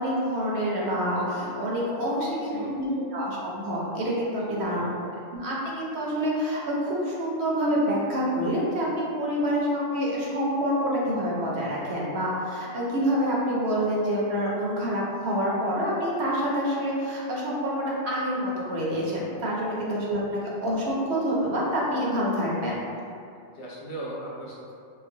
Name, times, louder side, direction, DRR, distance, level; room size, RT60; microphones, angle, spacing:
voice 1, 0.0-4.8 5.3-22.8, equal, 65° right, -5 dB, 0.9 m, -27 dB
voice 2, 2.4-3.0 4.4-4.9 19.7-19.8 20.4-20.5 23.5-24.7, right 1 dB, 70° left, -5 dB, 0.9 m, -38 dB
3.8 x 2.1 x 2.6 m, 2.5 s
omnidirectional pair, 1.2 m